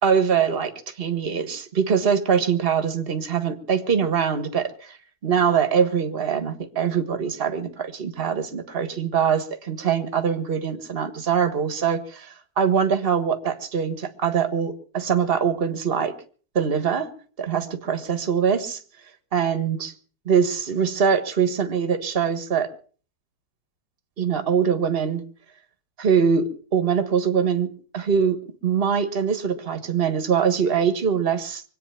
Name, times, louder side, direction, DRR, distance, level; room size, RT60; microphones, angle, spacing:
voice 1, 0.0-5.0 5.2-16.1 16.5-18.8 19.3-19.9 20.2-22.7 24.2-25.2 26.0-31.6, right 7 dB, 35° right, 8 dB, 1.5 m, -23 dB
24.5 x 9.2 x 5.8 m, 0.43 s
omnidirectional pair, 2.0 m